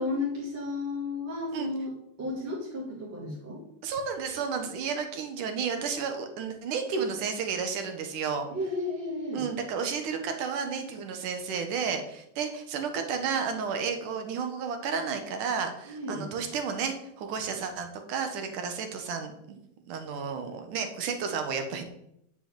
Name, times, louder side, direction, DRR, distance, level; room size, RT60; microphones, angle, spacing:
voice 1, 0.0-3.6 8.5-9.4 15.9-16.3, left 2 dB, 35° right, -6 dB, 4.8 m, -33 dB
voice 2, 3.8-8.5 9.3-21.8, right 6 dB, 70° right, 6 dB, 3.0 m, -32 dB
10.5 x 6.8 x 9.2 m, 0.77 s
omnidirectional pair, 3.9 m